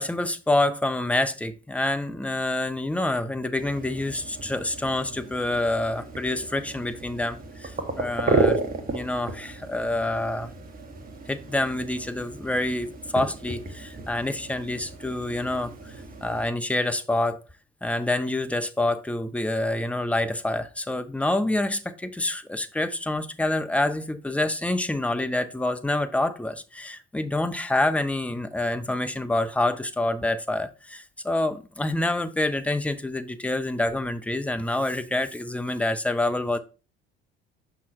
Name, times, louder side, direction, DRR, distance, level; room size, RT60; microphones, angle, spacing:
voice 1, 0.0-8.6 8.9-10.5 11.3-16.0 16.2-17.4 17.8-36.6, left 2 dB, 5° left, 0.7 m, -27 dB
sound 1, 3.6-16.5, right 3 dB, 30° right, 1.5 m, -33 dB
5.9 x 5.9 x 3.1 m
figure-of-eight pair, 55°, 30 cm